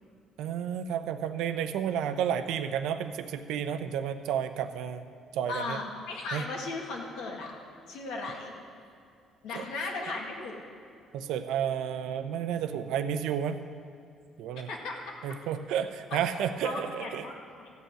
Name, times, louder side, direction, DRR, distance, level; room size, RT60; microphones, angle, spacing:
voice 1, 0.4-5.1 5.3-5.8 6.3-6.5 9.5-9.6 11.1-13.6 14.4-14.7 15.2-17.2, right 8 dB, 85° right, 10 dB, 0.6 m, -31 dB
voice 2, 5.5-7.5 7.9-8.5 9.4-10.6 14.7-15.0 16.1-16.2 16.6-17.7, left 3 dB, 80° left, -1 dB, 1.9 m, -36 dB
14.5 x 5.5 x 8.9 m, 2.4 s
cardioid pair, 150°, 0 cm